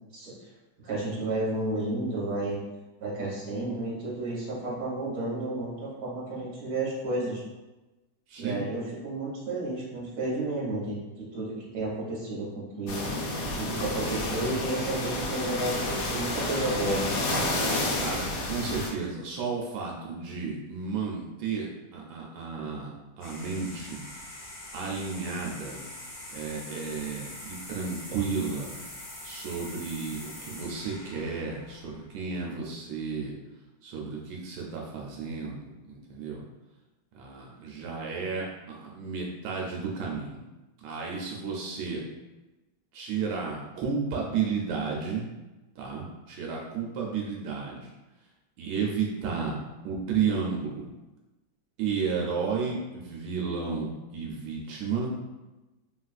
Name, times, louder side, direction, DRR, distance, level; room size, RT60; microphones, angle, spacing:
voice 1, 0.8-2.6 3.0-7.4 8.4-13.2 13.6-17.1, right 2 dB, 50° right, -6 dB, 1.3 m, -32 dB
voice 2, 8.3-8.6 18.0-24.0 24.7-25.8 26.3-28.8 29.2-33.3 33.8-36.4 37.1-40.4 40.8-42.0 42.9-45.2 45.8-47.9 48.6-49.6 49.8-50.9 51.8-55.1, right 5 dB, 85° right, -2 dB, 1.3 m, -32 dB
sound 1, 12.9-18.9, left 1 dB, 70° left, 1.0 m, -30 dB
sound 2, 23.2-32.4, left 1 dB, 45° left, 1.0 m, -43 dB
3.5 x 2.4 x 2.3 m, 1.1 s
omnidirectional pair, 2.1 m